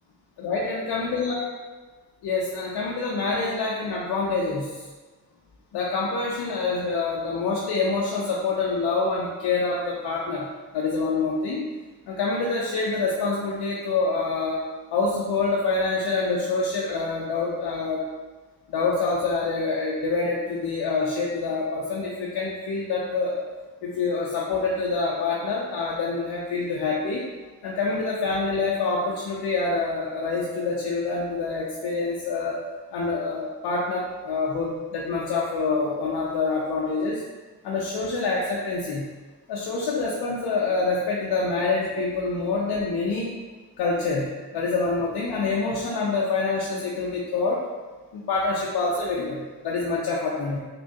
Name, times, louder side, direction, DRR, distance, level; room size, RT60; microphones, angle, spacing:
voice 1, 0.4-1.4 2.2-4.8 5.7-10.5 10.7-11.7 12.1-14.6 14.9-18.0 18.7-23.4 23.8-27.3 27.6-32.6 32.9-37.2 37.6-39.1 39.5-43.3 43.8-47.6 48.1-50.6, left 3 dB, 70° left, -4 dB, 0.6 m, -26 dB
3.8 x 2.3 x 2.3 m, 1.3 s
supercardioid pair, 40°, 43 cm